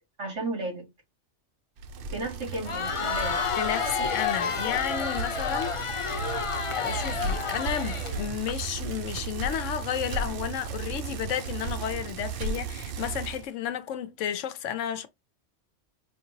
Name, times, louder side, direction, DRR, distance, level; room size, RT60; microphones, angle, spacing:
voice 1, 0.2-0.9 2.1-3.4 5.5-5.8, right 2 dB, 80° right, 2.5 m, -34 dB
Bicycle, 1.8-13.5, right 4 dB, 60° right, 0.6 m, -35 dB
Crowd, 2.5-8.5, left 5 dB, 50° left, 0.3 m, -30 dB
voice 2, 3.6-5.7 6.8-15.1, left 10 dB, 80° left, 1.0 m, -32 dB
5.1 x 2.8 x 2.7 m
omnidirectional pair, 1.3 m